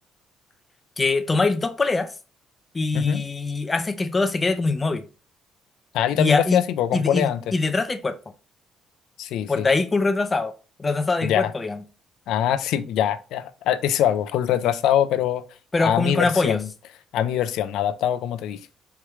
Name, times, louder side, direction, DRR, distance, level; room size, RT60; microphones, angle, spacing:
voice 1, 1.0-2.1 2.7-5.0 6.1-6.6 6.9-8.2 9.5-10.5 10.8-11.8 15.7-16.6, left 3 dB, 20° left, 0.5 m, -23 dB
voice 2, 5.9-7.4 9.2-9.7 11.2-11.5 12.3-15.4 15.8-16.7 17.1-18.6, left 10 dB, 85° left, 0.4 m, -23 dB
4.6 x 3.1 x 3.5 m
cardioid pair, 165°, 0 cm